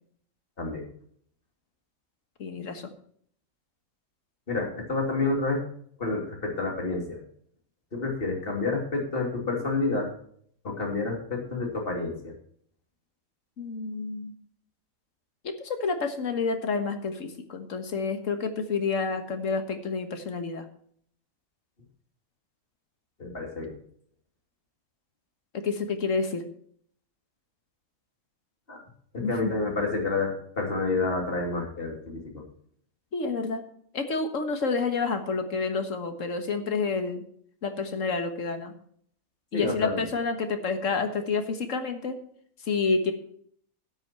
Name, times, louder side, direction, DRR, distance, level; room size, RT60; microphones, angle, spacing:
voice 1, 2.4-2.9 13.6-14.3 15.4-20.7 25.5-26.4 29.2-29.7 33.1-33.6 33.9-37.2 37.6-38.7 39.5-42.2 42.6-43.1, left 4 dB, 60° left, 7 dB, 1.8 m, -29 dB
voice 2, 4.5-5.6 6.0-7.2 7.9-10.1 10.6-12.3 23.2-23.7 28.7-28.8 29.1-32.4 39.5-40.0, left 3 dB, 40° left, 0 dB, 3.1 m, -29 dB
12.5 x 9.3 x 4.4 m, 0.62 s
omnidirectional pair, 1.5 m